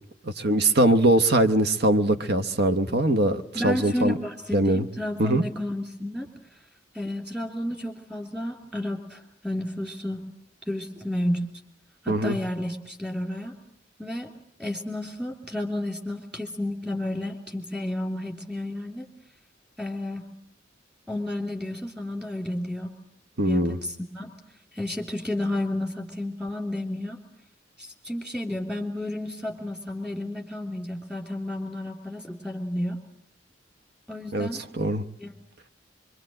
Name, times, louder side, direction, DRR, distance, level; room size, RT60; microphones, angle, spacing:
voice 1, 0.2-4.2 4.5-4.9 5.2-5.4 12.1-12.4 23.4-23.8 34.3-34.5 34.7-35.0, right 1 dB, 60° right, 1.1 m, -22 dB
voice 2, 3.5-6.3 6.9-10.2 10.7-11.5 12.0-13.5 14.0-14.3 14.6-19.0 19.8-20.3 21.1-22.9 23.5-24.3 24.7-27.2 27.8-33.0 34.1-34.6 35.2-35.3, left 1 dB, 5° right, 3.1 m, -31 dB
24.0 x 23.5 x 7.7 m
head